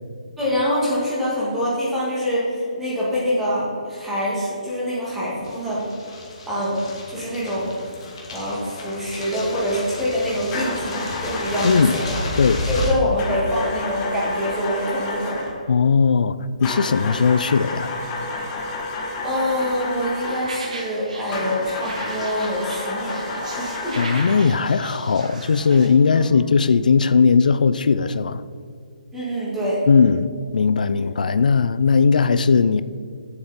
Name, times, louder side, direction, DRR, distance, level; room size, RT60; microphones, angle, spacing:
voice 1, 0.4-5.8 6.5-6.8 7.1-7.7 8.3-12.2 12.7-15.5 19.2-24.0 26.1-26.4 29.1-29.8 31.0-31.3, equal, 5° right, 1.8 m, -25 dB
sound 1, 5.4-12.9, left 1 dB, 35° left, 1.7 m, -32 dB
sound 2, 10.5-12.1 13.2-15.6 16.6-20.6 21.3-24.5, left 2 dB, 15° left, 0.8 m, -30 dB
voice 2, 11.6-12.0 12.4-12.6 15.7-17.9 24.0-28.4 29.9-30.3 30.5-32.8, left 5 dB, 90° left, 0.4 m, -18 dB
sound 3, 20.2-25.9, right 2 dB, 60° right, 1.8 m, -36 dB
9.6 x 7.2 x 4.1 m
hypercardioid pair, 175°, 4 cm